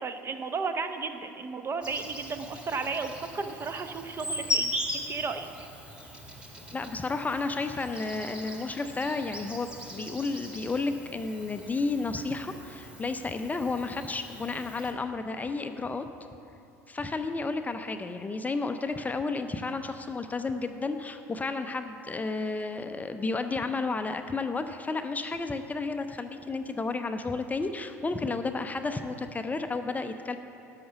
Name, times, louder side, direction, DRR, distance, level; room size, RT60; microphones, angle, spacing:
voice 1, 0.0-5.5, right 4 dB, 30° right, 8 dB, 0.7 m, -34 dB
Insect, 1.8-14.9, left 1 dB, 10° right, 1.9 m, -39 dB
voice 2, 6.7-16.0 16.9-30.4, left 3 dB, 20° left, 8 dB, 0.5 m, -32 dB
11.5 x 5.8 x 6.7 m, 2.9 s
figure-of-eight pair, 65°, 8 cm